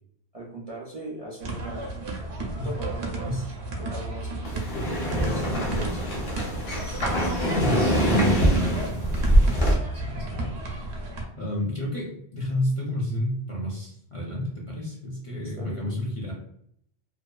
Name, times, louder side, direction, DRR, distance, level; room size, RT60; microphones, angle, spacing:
voice 1, 0.3-1.9 2.6-3.5 3.8-6.1 15.4-15.9, right 1 dB, 50° right, -4 dB, 0.5 m, -39 dB
sound 1, 1.4-11.2, right 2 dB, 85° right, 0.9 m, -33 dB
sound 2, 4.4-9.7, equal, 65° left, 1.0 m, -23 dB
voice 2, 7.2-10.9 11.4-16.3, left 1 dB, 45° left, -4 dB, 0.5 m, -31 dB
2.6 x 2.3 x 2.3 m, 0.70 s
omnidirectional pair, 1.1 m